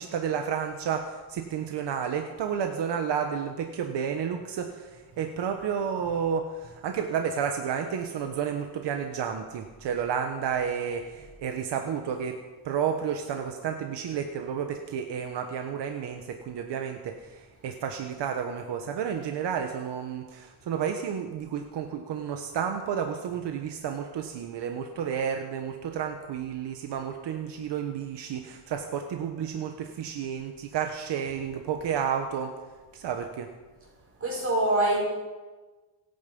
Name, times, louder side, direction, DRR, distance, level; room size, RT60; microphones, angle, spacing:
voice 1, 0.0-12.4 12.6-32.5 32.9-33.5, right 7 dB, 80° right, 5 dB, 1.4 m, -31 dB
voice 2, 34.2-35.0, right 1 dB, 35° right, -3 dB, 6.2 m, -24 dB
26.5 x 9.5 x 5.5 m, 1.3 s
cardioid pair, 170°, 42 cm